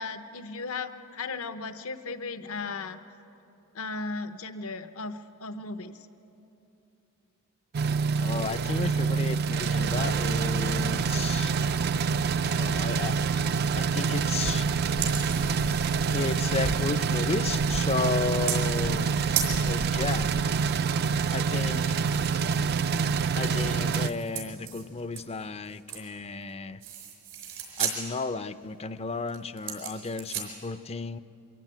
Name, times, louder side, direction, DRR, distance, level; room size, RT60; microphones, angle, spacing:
voice 1, 0.0-3.0 3.7-6.1, left 3 dB, 70° left, 10 dB, 0.9 m, -36 dB
sound 1, 7.7-24.1, right 5 dB, 50° right, 0.4 m, -26 dB
voice 2, 8.2-11.5 12.6-14.7 16.1-19.1 19.7-20.3 21.3-22.0 23.4-26.8 27.8-31.2, left 4 dB, 30° left, 14 dB, 0.5 m, -33 dB
sound 2, 14.1-14.2 14.8-16.8 17.3-17.6 18.5-18.8 19.0-19.1 19.3-19.6 22.1-26.1 26.4-26.5 26.8-28.0 28.5-28.7 29.3-30.5, right 8 dB, 90° right, 5.0 m, -36 dB
sound 3, 14.4-20.4, left 1 dB, 90° left, 1.6 m, -39 dB
23.5 x 15.5 x 9.0 m, 2.9 s
head